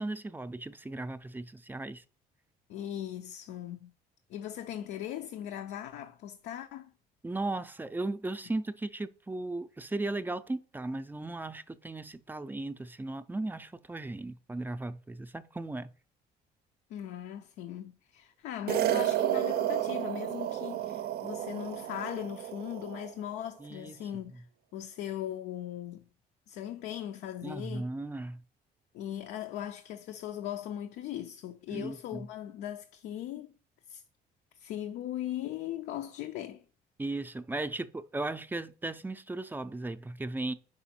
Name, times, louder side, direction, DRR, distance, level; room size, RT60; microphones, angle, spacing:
voice 1, 0.0-2.0 7.2-15.9 23.6-24.0 27.4-28.4 31.7-32.3 37.0-40.5, right 2 dB, 10° right, 0.4 m, -36 dB
voice 2, 2.7-3.9 4.3-6.9 16.9-24.4 24.7-26.0 26.5-27.9 28.9-33.5 33.9-34.0 34.6-36.6, left 11 dB, 85° left, 0.5 m, -39 dB
sound 1, 18.7-23.1, right 12 dB, 65° right, 0.5 m, -31 dB
5.1 x 4.9 x 4.2 m
cardioid pair, 110°, 17 cm